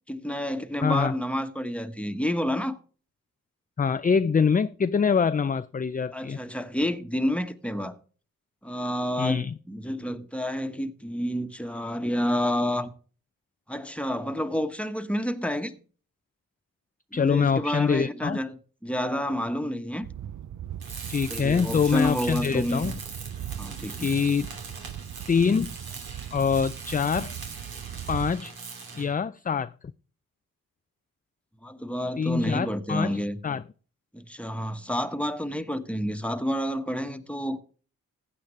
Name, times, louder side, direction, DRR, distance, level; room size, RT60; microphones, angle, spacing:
voice 1, 0.1-2.8 6.1-7.9 8.6-12.9 13.7-15.8 17.1-20.1 21.3-22.9 23.6-24.1 31.6-33.4 34.1-37.6, equal, 5° left, 1.4 m, -29 dB
voice 2, 0.8-1.1 3.8-6.4 9.2-9.5 17.1-18.4 21.1-23.0 24.0-24.5 25.3-25.7 26.3-27.3 28.1-28.5 28.9-29.7 32.2-33.6, left 6 dB, 25° left, 0.4 m, -24 dB
sound 1, 20.0-28.3, right 10 dB, 55° right, 0.6 m, -38 dB
Tools, 20.8-29.2, right 4 dB, 80° right, 2.8 m, -41 dB
15.5 x 8.7 x 3.2 m
supercardioid pair, 40°, 36 cm